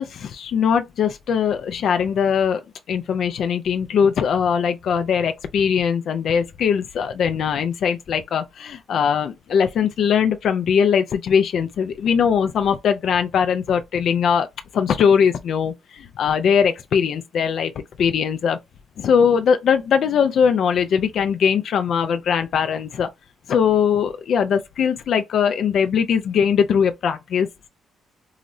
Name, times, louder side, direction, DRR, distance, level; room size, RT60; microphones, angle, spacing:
voice 1, 0.0-2.6 2.9-14.5 14.7-17.7 18.0-18.6 19.0-23.1 23.5-27.7, left 7 dB, 65° left, 0.4 m, -20 dB
4.7 x 2.0 x 2.6 m
cardioid pair, 90°, 0 cm